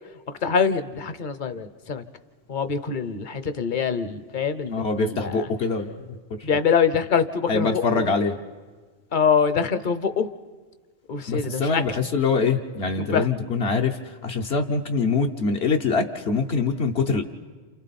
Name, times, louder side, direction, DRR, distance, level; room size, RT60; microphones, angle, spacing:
voice 1, 0.4-2.0 2.5-5.5 6.4-8.2 9.1-10.3 11.1-11.8 13.1-13.3, left 6 dB, 50° left, 11 dB, 0.9 m, -24 dB
voice 2, 4.7-6.5 7.5-8.4 11.3-17.2, left 4 dB, 70° left, 3 dB, 1.2 m, -24 dB
29.0 x 28.0 x 4.2 m, 1.4 s
omnidirectional pair, 1.1 m